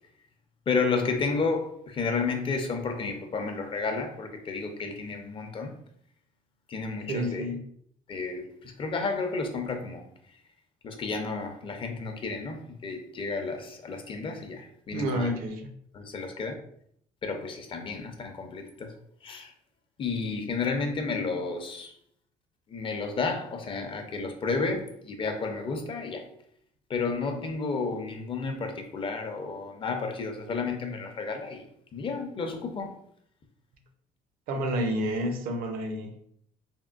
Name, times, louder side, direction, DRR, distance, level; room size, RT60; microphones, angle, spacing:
voice 1, 0.7-5.7 6.7-7.5 8.1-10.0 10.8-15.3 15.9-16.6 17.2-18.9 19.2-19.5 20.0-21.9 22.7-26.3 26.9-31.7 31.9-32.9, left 4 dB, 35° left, 4 dB, 0.6 m, -31 dB
voice 2, 7.1-7.6 14.9-15.7 34.5-36.2, equal, 75° right, 5 dB, 0.6 m, -29 dB
3.5 x 2.1 x 2.4 m, 0.68 s
cardioid pair, 100°, 15 cm